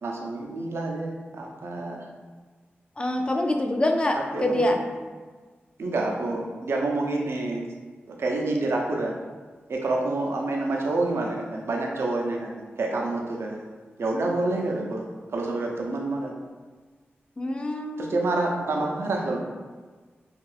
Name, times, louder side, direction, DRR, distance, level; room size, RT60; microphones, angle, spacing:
voice 1, 0.0-2.1 4.1-4.7 5.8-7.6 8.1-9.1 9.7-13.6 14.0-15.1 15.3-16.3 18.0-19.4, right 2 dB, 75° right, 0 dB, 0.4 m, -28 dB
voice 2, 3.0-4.8 17.4-18.2, left 1 dB, 25° left, 3 dB, 0.3 m, -25 dB
2.6 x 2.3 x 3.2 m, 1.4 s
cardioid pair, 65°, 4 cm